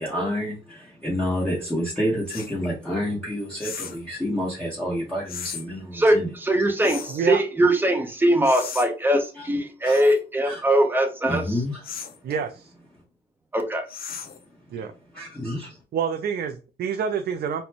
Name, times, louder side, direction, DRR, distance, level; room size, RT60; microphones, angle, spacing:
voice 1, 0.0-6.3 9.4-9.5 9.8-9.9 10.5-10.6 11.3-11.8 15.1-15.8, equal, 5° left, -7 dB, 1.2 m, -28 dB
sound 1, 2.3-2.5 3.6-4.0 5.3-5.6 6.8-7.2 8.4-8.9 9.8-10.2 11.8-12.2 13.9-14.4, left 7 dB, 50° left, 0.6 m, -36 dB
voice 2, 5.9-11.6 13.5-13.8, right 1 dB, 10° right, 4 dB, 0.8 m, -21 dB
voice 3, 7.1-7.4 12.2-12.7 14.7-14.9 15.9-17.6, right 7 dB, 55° right, 6 dB, 0.4 m, -27 dB
4.1 x 2.2 x 2.9 m, 0.34 s
cardioid pair, 90°, 20 cm